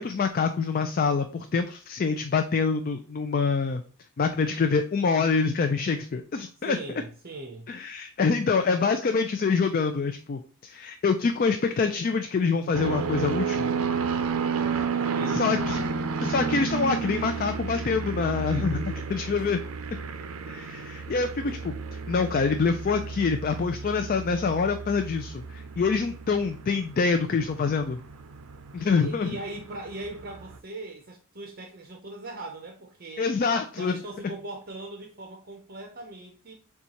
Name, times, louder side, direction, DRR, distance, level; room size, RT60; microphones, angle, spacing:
voice 1, 0.0-3.8 4.2-6.8 7.7-13.7 15.3-15.8 16.2-19.6 20.5-21.7 22.1-28.0 28.7-29.3 33.2-34.0, left 5 dB, 40° left, 7 dB, 0.3 m, -26 dB
voice 2, 6.6-7.7 15.1-16.0 19.3-19.4 21.4-21.6 28.9-33.3 33.8-36.5, right 2 dB, 45° right, 2 dB, 0.7 m, -40 dB
sound 1, 12.7-29.8 30.0-30.5, right 5 dB, 80° right, 0.5 m, -31 dB
6.8 x 2.4 x 2.9 m, 0.42 s
head